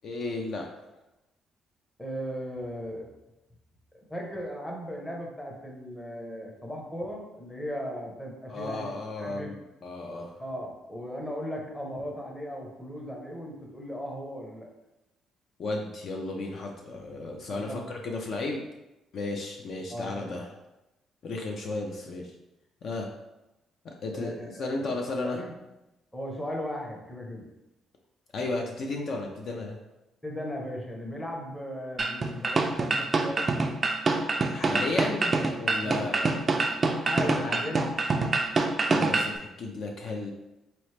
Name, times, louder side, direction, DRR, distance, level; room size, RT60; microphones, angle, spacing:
voice 1, 0.0-0.7 8.5-10.3 15.6-18.6 19.1-20.5 21.2-22.3 22.8-23.1 23.8-25.4 28.3-29.8 34.5-36.9 37.4-37.6 38.8-40.3, left 2 dB, 50° left, 1 dB, 0.4 m, -34 dB
voice 2, 2.0-3.1 4.1-8.9 9.2-9.5 10.4-14.7 17.5-17.9 19.9-20.3 24.1-24.9 25.3-25.5 26.1-27.4 30.2-33.7 35.8-36.1 36.9-37.9, equal, 10° left, 0 dB, 0.7 m, -37 dB
sound 1, 32.0-39.4, right 3 dB, 30° right, 0.3 m, -26 dB
3.9 x 3.0 x 3.2 m, 0.95 s
cardioid pair, 140°, 0 cm